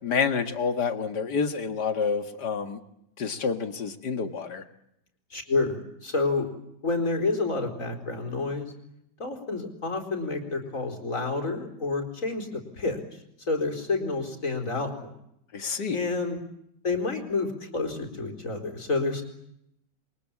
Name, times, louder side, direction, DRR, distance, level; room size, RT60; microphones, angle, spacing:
voice 1, 0.0-2.8 3.2-4.6 15.5-16.1, left 5 dB, 70° left, 8 dB, 2.4 m, -28 dB
voice 2, 5.3-6.5 6.8-8.7 9.2-13.0 13.5-15.1 15.9-16.4 16.8-19.2, left 3 dB, 45° left, 4 dB, 4.7 m, -29 dB
28.5 x 23.5 x 8.6 m, 0.78 s
omnidirectional pair, 1.9 m